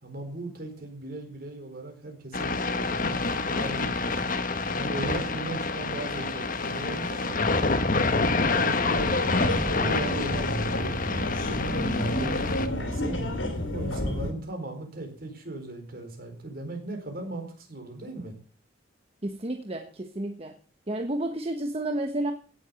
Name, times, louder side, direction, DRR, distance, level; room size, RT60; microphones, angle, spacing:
voice 1, 0.0-4.2 4.7-7.4 8.0-13.2 13.7-18.3, right 2 dB, 50° right, 4.5 m, -38 dB
sound 1, 2.3-12.7, left 3 dB, 45° left, 1.4 m, -27 dB
sound 2, 9.0-14.3, left 1 dB, 80° left, 3.0 m, -30 dB
voice 2, 19.2-20.5 20.9-22.3, right 1 dB, 30° right, 1.2 m, -31 dB
17.0 x 7.7 x 7.0 m
head